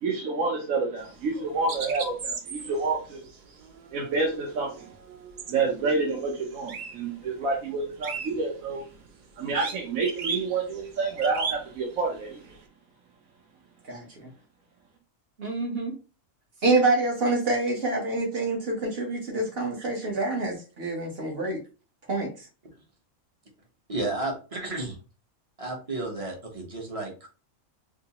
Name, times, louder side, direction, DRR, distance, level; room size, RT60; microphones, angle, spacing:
voice 1, 0.0-3.2 3.9-4.7 5.5-8.8 9.4-12.4, right 3 dB, 70° right, -1 dB, 1.2 m, -28 dB
sound 1, 1.0-7.1 7.4-12.6, right 5 dB, 85° right, 0.4 m, -38 dB
voice 2, 15.4-15.9 16.6-21.6 22.1-22.3, right 2 dB, 50° right, 0 dB, 1.1 m, -26 dB
voice 3, 23.9-25.0 25.6-27.3, right 2 dB, 30° right, 1 dB, 0.8 m, -32 dB
4.6 x 2.0 x 2.8 m, 0.34 s
omnidirectional pair, 1.5 m